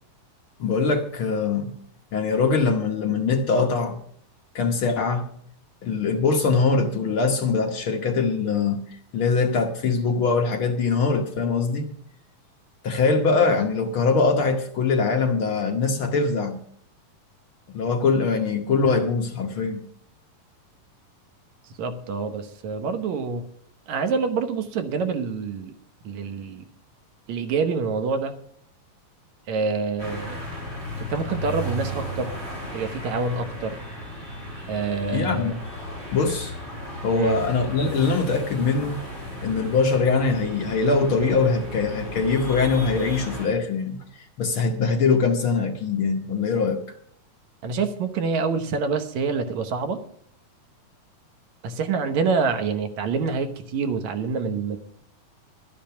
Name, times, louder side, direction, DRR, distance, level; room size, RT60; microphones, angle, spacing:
voice 1, 0.6-1.7 2.1-4.0 4.5-5.3 5.8-11.9 12.8-16.6 17.7-19.8 35.1-35.6 36.1-36.5 37.0-39.0 39.4-46.8, left 4 dB, 65° left, 3 dB, 1.3 m, -22 dB
voice 2, 21.8-23.5 23.9-25.8 26.0-26.6 27.3-28.3 29.5-30.4 31.0-32.3 32.7-33.8 34.7-35.5 37.1-37.4 47.6-50.0 51.6-54.8, right 4 dB, 65° right, 8 dB, 2.2 m, -26 dB
sound 1, 30.0-43.5, equal, 15° right, 5.5 m, -35 dB
12.0 x 10.5 x 5.8 m, 0.62 s
omnidirectional pair, 3.8 m